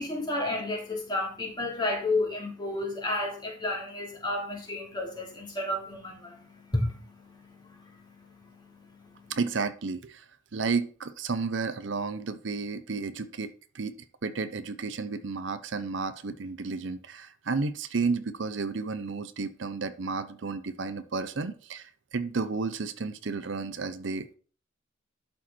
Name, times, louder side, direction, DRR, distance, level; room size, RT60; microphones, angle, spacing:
voice 1, 0.0-9.3, left 2 dB, 20° left, -1 dB, 2.7 m, -32 dB
voice 2, 9.3-10.3 10.5-14.0 14.2-24.3, right 4 dB, 65° right, 12 dB, 0.6 m, -32 dB
11.5 x 4.5 x 4.5 m, 0.41 s
head